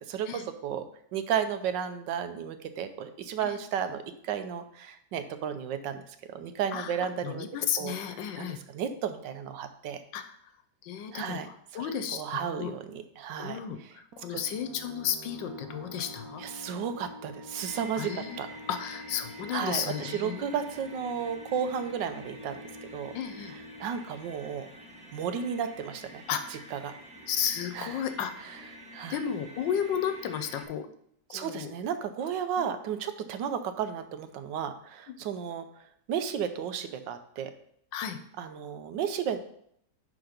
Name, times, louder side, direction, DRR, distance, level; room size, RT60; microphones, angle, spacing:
voice 1, 0.1-7.5 7.8-8.0 8.4-10.0 11.1-14.0 14.3-14.4 16.4-18.5 19.5-22.6 22.9-23.1 23.4-24.7 25.1-26.2 26.5-26.9 27.7-28.0 28.4-28.6 28.9-29.2 31.3-35.7 36.1-37.5 38.4-39.4, right 8 dB, 85° right, 9 dB, 1.4 m, -33 dB
voice 2, 7.2-8.6 10.1-10.2 10.8-11.4 11.7-12.7 13.4-16.4 18.0-18.4 18.7-20.5 23.1-23.5 26.3-26.5 27.3-28.5 29.1-30.9 31.3-31.7 35.1-35.2 37.9-38.2, left 8 dB, 85° left, 8 dB, 1.5 m, -33 dB
sound 1, 14.1-25.4, left 1 dB, 60° right, 1.1 m, -47 dB
sound 2, 17.6-30.6, right 1 dB, 5° right, 0.9 m, -48 dB
9.9 x 3.8 x 5.1 m, 0.68 s
omnidirectional pair, 1.9 m